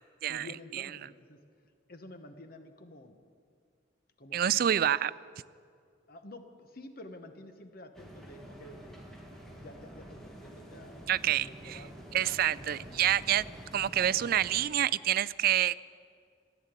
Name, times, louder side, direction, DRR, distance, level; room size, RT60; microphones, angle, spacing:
voice 1, 0.3-1.4 1.9-3.4 4.2-5.0 6.1-9.0 9.6-13.1, left 1 dB, 50° left, 7 dB, 1.1 m, -50 dB
voice 2, 4.3-5.1 11.1-11.8 12.1-13.4 13.7-15.8, right 11 dB, 50° right, 17 dB, 0.3 m, -27 dB
sound 1, 7.9-14.7, right 1 dB, ahead, 1.8 m, -48 dB
15.0 x 10.5 x 8.1 m, 2.2 s
head